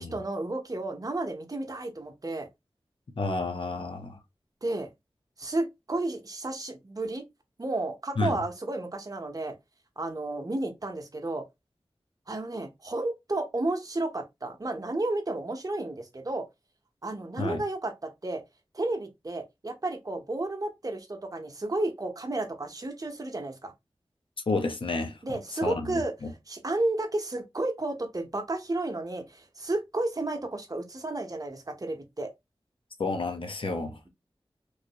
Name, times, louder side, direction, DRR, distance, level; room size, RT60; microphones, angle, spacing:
voice 1, 0.0-2.5 4.6-4.9 5.4-7.2 7.6-9.5 10.0-11.4 12.3-16.5 17.0-18.4 18.7-23.7 25.2-26.1 26.5-32.3, right 2 dB, 40° right, 0.8 m, -32 dB
voice 2, 3.2-4.2 8.2-8.4 17.4-17.6 24.5-26.3 33.0-34.0, left 3 dB, 65° left, 0.7 m, -31 dB
3.1 x 2.6 x 2.7 m
cardioid pair, 40°, 10 cm